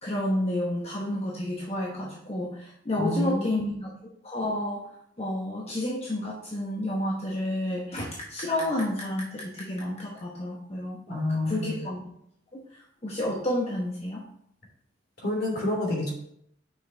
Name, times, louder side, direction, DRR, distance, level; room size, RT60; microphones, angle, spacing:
voice 1, 0.0-3.9 4.2-4.9 5.2-11.0 11.3-12.1 12.5-14.2, left 1 dB, 35° left, -3 dB, 1.1 m, -30 dB
voice 2, 3.0-3.6 11.1-11.8 15.2-16.1, left 1 dB, 55° left, -1 dB, 3.0 m, -28 dB
9.1 x 5.9 x 3.4 m, 0.72 s
head